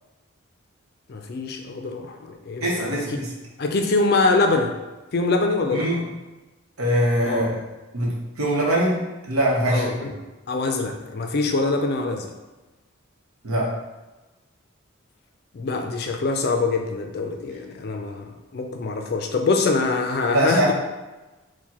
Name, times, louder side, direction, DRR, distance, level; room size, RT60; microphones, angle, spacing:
voice 1, 1.1-3.2 3.6-4.7 5.1-6.0 7.2-7.5 9.7-10.1 10.5-12.3 15.5-20.7, left 3 dB, 50° left, 4 dB, 0.4 m, -24 dB
voice 2, 2.6-3.3 5.7-6.0 6.8-7.6 7.9-9.0 9.3-10.1 13.4-13.7 20.3-20.7, right 1 dB, 90° right, -3 dB, 0.8 m, -22 dB
4.6 x 2.1 x 2.8 m, 1.1 s
head